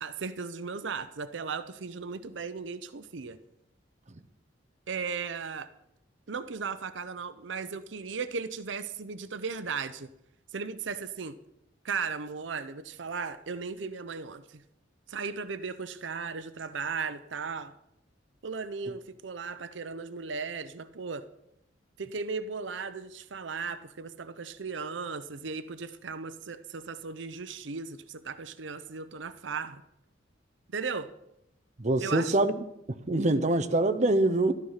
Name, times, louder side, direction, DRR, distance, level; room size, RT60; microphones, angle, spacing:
voice 1, 0.0-3.4 4.9-5.7 6.3-10.1 10.5-11.4 11.8-14.6 15.1-17.7 18.4-21.3 22.0-29.8 30.7-31.1 32.0-32.4, right 5 dB, 80° right, 12 dB, 0.7 m, -36 dB
voice 2, 31.8-32.5 32.9-34.5, right 2 dB, 40° right, 7 dB, 0.8 m, -24 dB
13.0 x 12.5 x 5.7 m, 0.82 s
head